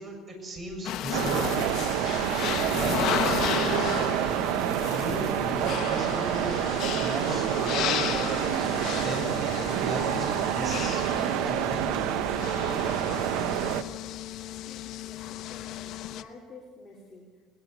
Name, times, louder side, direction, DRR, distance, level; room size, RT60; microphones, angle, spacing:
voice 1, 0.0-1.8 2.8-3.6 4.8-6.6 7.0-8.7 9.0-9.4 9.8-11.8, right 1 dB, 30° right, 3 dB, 6.8 m, -36 dB
sound 1, 0.8-16.2, left 12 dB, 60° left, 1.0 m, -34 dB
sound 2, 1.1-13.8, right 11 dB, 80° right, 0.9 m, -28 dB
voice 2, 13.4-13.9 14.4-17.4, left 3 dB, 20° left, -4 dB, 3.8 m, -50 dB
20.0 x 19.0 x 8.3 m, 1.5 s
cardioid pair, 130°, 0 cm